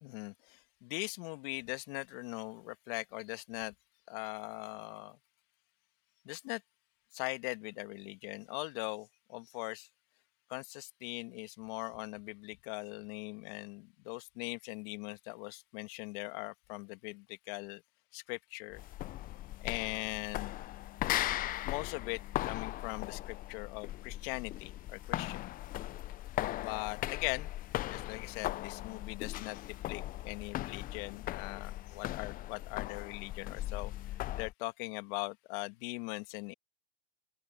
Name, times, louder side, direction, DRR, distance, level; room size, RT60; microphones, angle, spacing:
voice 1, 0.0-3.7 4.1-5.2 6.3-6.6 7.1-9.9 10.5-17.8 18.1-18.8 19.6-20.6 21.6-22.2 22.5-25.5 26.6-33.9 34.4-36.5, left 29 dB, 50° left, 2.0 m, -41 dB
sound 1, 18.7-34.5, left 15 dB, 25° left, 0.6 m, -38 dB
open air
hypercardioid pair, 110°, 36 cm